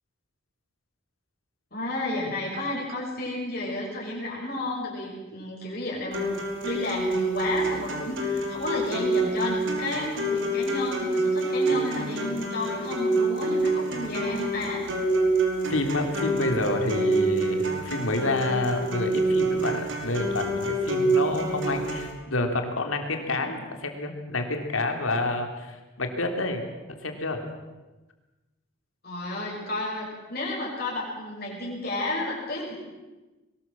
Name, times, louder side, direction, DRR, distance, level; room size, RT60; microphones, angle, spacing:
voice 1, 1.7-6.3 6.6-14.9 29.0-32.7, left 2 dB, 50° left, -3 dB, 5.7 m, -32 dB
sound 1, 6.1-22.1, right 2 dB, 70° right, 4.7 m, -27 dB
voice 2, 15.7-27.4, left 2 dB, 90° left, 4 dB, 3.5 m, -28 dB
23.0 x 19.5 x 7.6 m, 1.1 s
head